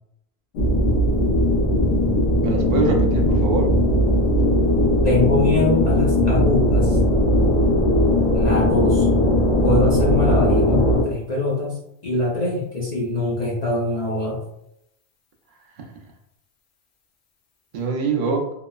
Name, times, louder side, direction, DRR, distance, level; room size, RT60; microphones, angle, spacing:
sound 1, 0.5-11.0, left 1 dB, 75° left, 0.8 m, -18 dB
voice 1, 2.4-3.7 17.7-18.5, right 4 dB, 55° right, 0 dB, 0.7 m, -23 dB
voice 2, 5.0-7.0 8.3-9.1 9.6-11.8 12.0-14.4, left 2 dB, 50° left, -5 dB, 0.6 m, -23 dB
2.9 x 2.0 x 2.2 m, 0.79 s
omnidirectional pair, 1.1 m